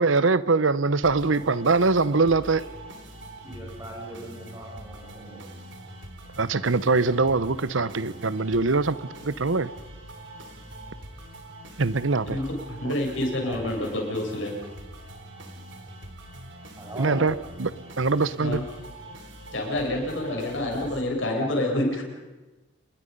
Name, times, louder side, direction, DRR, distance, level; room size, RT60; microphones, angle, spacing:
voice 1, 0.0-2.6 6.4-9.0 9.2-9.7 11.8-12.4 12.8-12.9 17.0-17.7 18.0-18.6, right 3 dB, 85° right, 0.9 m, -23 dB
sound 1, 1.0-21.0, right 1 dB, 65° right, 4.0 m, -44 dB
voice 2, 3.4-5.4 12.4-12.5 13.4-13.7 16.8-17.3, right 1 dB, 15° right, 6.8 m, -39 dB
voice 3, 12.3-14.6 18.4-18.6 19.5-22.0, left 1 dB, 80° left, 7.8 m, -28 dB
29.5 x 21.5 x 5.4 m
head